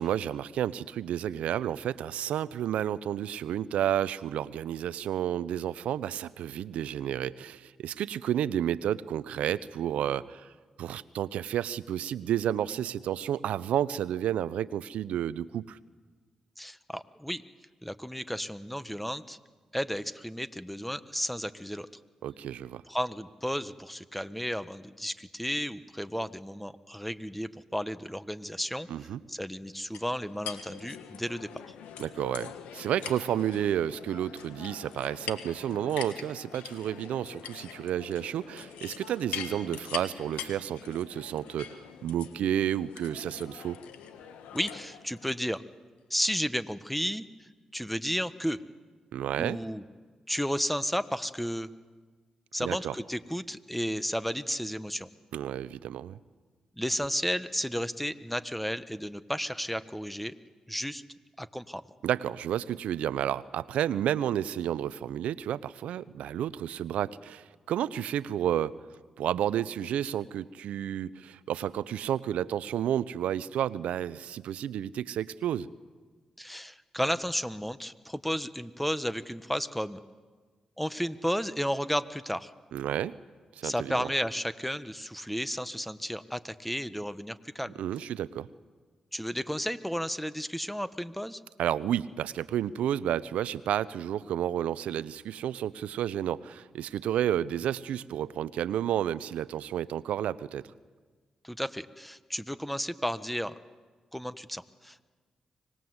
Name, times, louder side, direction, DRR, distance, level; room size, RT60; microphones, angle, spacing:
voice 1, 0.0-10.5 10.8-15.8 22.2-22.8 28.9-29.2 32.0-43.8 49.1-49.6 52.6-52.9 55.3-56.2 62.0-68.7 69.2-75.7 82.7-83.1 83.6-84.1 87.8-88.5 91.6-100.7, right 10 dB, 80° right, 18 dB, 0.6 m, -31 dB
voice 2, 16.6-17.4 17.8-19.4 19.7-21.9 22.9-28.9 29.3-31.7 44.5-45.6 46.1-48.6 49.4-49.8 50.3-51.7 52.5-55.1 56.8-60.3 60.7-61.0 61.4-61.8 76.4-80.0 80.8-82.5 83.6-87.7 89.1-91.4 101.4-103.5 104.1-105.1, equal, 5° left, 13 dB, 1.4 m, -33 dB
sound 1, 29.9-45.4, left 9 dB, 85° left, 1.4 m, -43 dB
25.0 x 19.5 x 8.1 m, 1.4 s
supercardioid pair, 40°, 2 cm